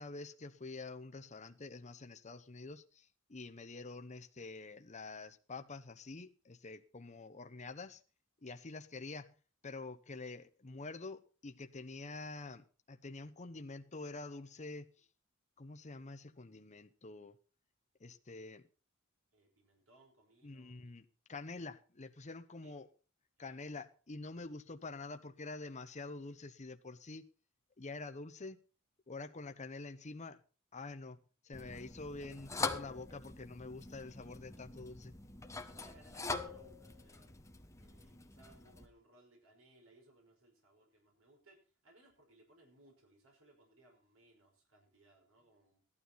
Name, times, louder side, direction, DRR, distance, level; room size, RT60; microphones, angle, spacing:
voice 1, 0.0-8.0 8.4-9.3 9.6-15.1 15.6-17.4 18.0-18.6 20.4-22.9 23.4-27.3 27.8-28.6 29.1-30.4 30.7-31.2 31.4-35.1, left 3 dB, 35° left, 0.9 m, -47 dB
voice 2, 19.3-20.9 22.6-22.7 23.4-23.5 35.7-37.4 37.8-41.6 41.8-45.8, right 1 dB, 70° right, 5.3 m, -65 dB
sound 1, 31.5-38.9, left 3 dB, 15° left, 1.3 m, -44 dB
15.5 x 12.5 x 4.1 m
head